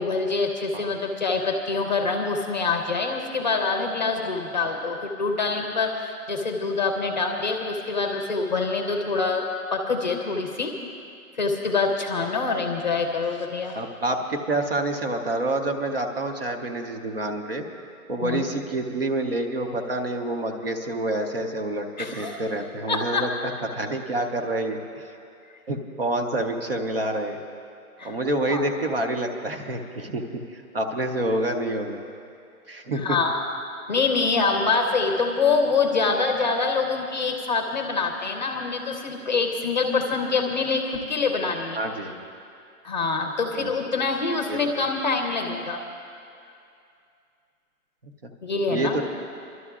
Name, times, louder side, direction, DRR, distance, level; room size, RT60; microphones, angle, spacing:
voice 1, 0.0-10.8 11.4-13.8 18.2-18.4 22.0-22.5 22.9-23.3 28.0-28.2 28.5-28.6 33.0-33.5 33.9-41.8 42.8-45.8 48.4-49.0, left 4 dB, 30° left, 3 dB, 0.7 m, -25 dB
voice 2, 13.7-17.6 18.1-21.8 22.1-23.3 23.7-25.1 25.7-27.4 28.0-32.0 32.7-33.2 41.8-42.3 43.6-43.7 44.5-44.6 48.2-48.3 48.7-49.0, right 1 dB, 40° right, 4 dB, 0.6 m, -27 dB
30.0 x 12.5 x 2.4 m, 2.5 s
hypercardioid pair, 170°, 45 cm